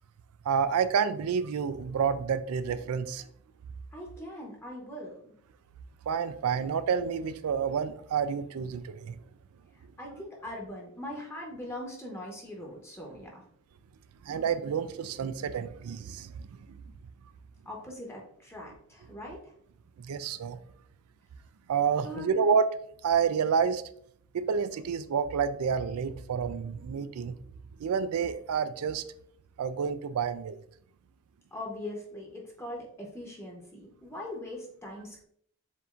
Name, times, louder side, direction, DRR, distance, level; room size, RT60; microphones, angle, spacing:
voice 1, 0.5-3.3 6.1-9.2 14.2-16.5 20.0-20.6 21.7-22.7 23.0-23.8 24.3-27.3 27.8-29.0 29.6-30.6, right 6 dB, 80° right, 13 dB, 0.3 m, -29 dB
voice 2, 3.9-5.3 9.7-13.4 17.6-19.5 22.0-22.6 31.5-35.2, left 1 dB, 10° left, -2 dB, 0.8 m, -41 dB
7.0 x 2.6 x 2.4 m, 0.64 s
head